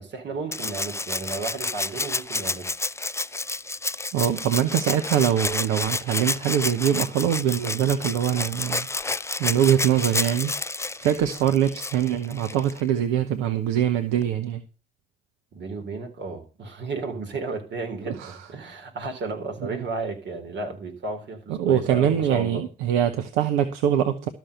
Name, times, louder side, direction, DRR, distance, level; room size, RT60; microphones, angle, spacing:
voice 1, 0.0-2.7 15.5-22.7, right 3 dB, 60° right, 3.7 m, -33 dB
Rattle (instrument), 0.5-12.8 14.2-14.3, left 3 dB, 15° left, 0.5 m, -30 dB
voice 2, 4.1-8.9 9.4-10.5 11.0-14.6 18.1-18.5 19.6-19.8 21.5-24.3, right 10 dB, 85° right, 0.9 m, -23 dB
13.0 x 6.2 x 6.6 m
hypercardioid pair, 45°, 20 cm